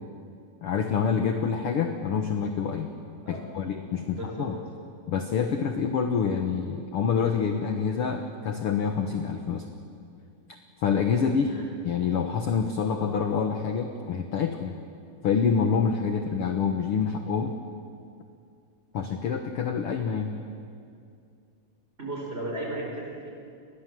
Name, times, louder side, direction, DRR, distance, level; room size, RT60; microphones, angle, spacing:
voice 1, 0.6-2.9 3.3-4.6 5.1-9.7 10.8-11.5 11.8-14.7 15.2-17.5 18.9-20.3, left 6 dB, 60° left, 5 dB, 1.5 m, -27 dB
voice 2, 4.1-4.5 11.5-11.6 22.0-23.3, right 1 dB, 15° right, -1 dB, 4.9 m, -35 dB
30.0 x 21.0 x 7.6 m, 2.4 s
omnidirectional pair, 4.1 m